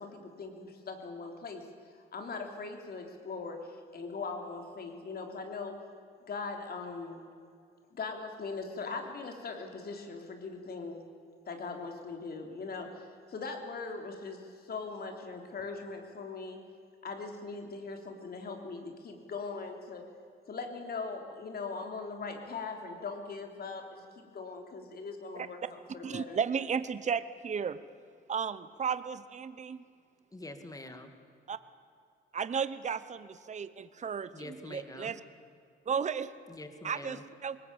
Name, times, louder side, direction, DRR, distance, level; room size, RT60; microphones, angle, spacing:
voice 1, 0.0-1.6 2.1-5.8 6.3-7.2 7.9-11.0 11.4-16.6 17.0-20.0 20.5-26.4, left 4 dB, 50° left, 4 dB, 3.3 m, -40 dB
voice 2, 26.0-27.8 28.3-29.8 31.5-31.6 32.3-35.2 35.9-36.3 36.8-37.6, right 7 dB, 35° right, 14 dB, 0.9 m, -34 dB
voice 3, 30.3-31.1 34.3-35.1 36.5-37.2, left 2 dB, 15° left, 7 dB, 2.4 m, -45 dB
21.0 x 19.0 x 8.9 m, 2.3 s
cardioid pair, 90°, 20 cm